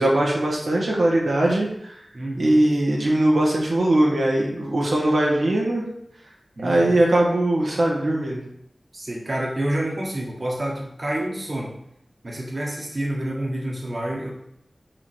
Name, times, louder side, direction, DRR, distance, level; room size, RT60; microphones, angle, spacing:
voice 1, 0.0-1.9 2.3-5.8 6.6-8.4, right 1 dB, 85° right, -2 dB, 1.6 m, -20 dB
voice 2, 2.1-2.6 6.6-7.0 8.9-11.7 12.2-14.3, right 1 dB, 45° right, -2 dB, 1.5 m, -28 dB
4.9 x 4.9 x 6.2 m, 0.76 s
wide cardioid pair, 80°, 0 cm